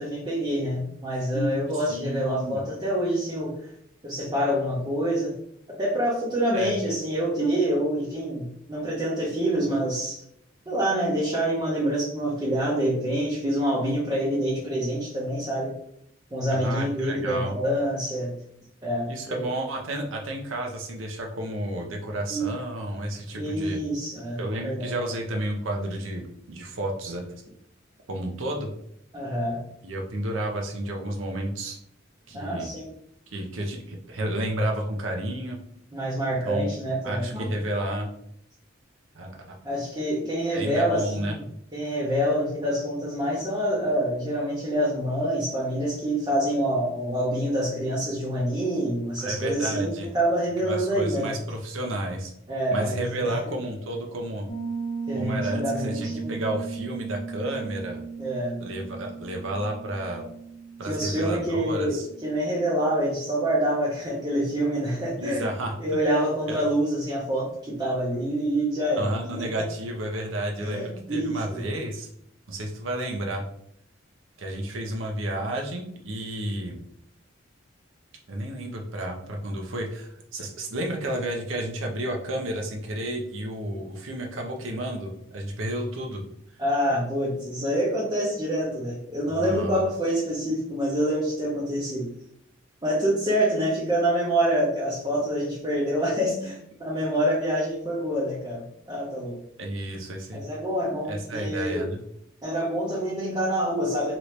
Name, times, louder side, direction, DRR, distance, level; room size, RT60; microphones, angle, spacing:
voice 1, 0.0-3.6 4.0-5.4 5.8-10.2 10.7-15.8 16.3-18.3 18.8-19.4 22.3-22.5 23.4-24.9 29.1-29.6 32.3-32.9 35.9-37.5 39.6-41.4 41.7-51.4 52.5-53.5 55.1-56.3 58.2-58.6 60.8-65.5 65.8-69.4 70.6-71.6 86.6-92.1 92.8-99.4 100.3-101.9 102.4-104.2, equal, 20° right, -6 dB, 0.7 m, -26 dB
voice 2, 1.9-2.6 6.5-6.7 16.5-17.5 19.1-23.8 24.4-27.2 28.1-28.7 29.8-31.8 32.3-32.7 33.3-35.6 36.4-36.7 37.0-38.1 39.1-39.6 40.5-41.4 49.2-50.1 50.6-52.3 52.7-54.5 55.1-58.0 58.6-60.3 60.8-62.1 65.2-65.8 66.5-66.6 69.0-72.1 72.5-73.4 74.4-76.8 78.3-86.2 89.3-89.8 99.6-100.4 101.1-102.0, right 1 dB, 80° right, 1 dB, 0.7 m, -31 dB
Piano, 54.5-63.0, right 5 dB, 55° left, 0.7 m, -36 dB
3.0 x 2.6 x 3.1 m, 0.71 s
head